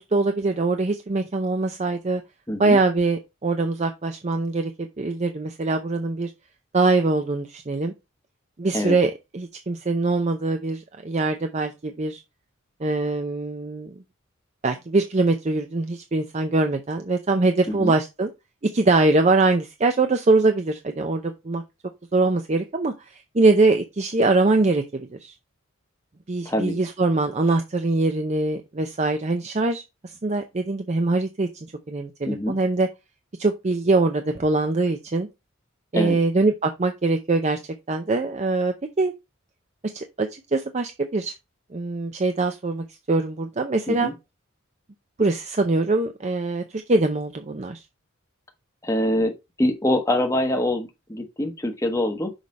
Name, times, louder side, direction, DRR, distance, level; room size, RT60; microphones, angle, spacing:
voice 1, 0.1-2.2 2.6-6.3 6.7-7.9 8.6-12.2 12.8-13.9 14.6-18.3 18.6-21.6 22.1-25.3 26.3-31.5 31.9-32.9 33.4-35.3 35.9-37.6 37.9-39.1 39.8-41.3 41.7-44.1 45.2-47.8, right 3 dB, 35° right, 0.6 m, -23 dB
voice 2, 2.5-2.8 8.7-9.0 17.7-17.9 26.4-26.7 32.3-32.6 35.9-36.2 43.9-44.1 48.8-49.3 49.6-52.3, left 1 dB, 15° left, 1.0 m, -24 dB
6.4 x 4.9 x 4.1 m
head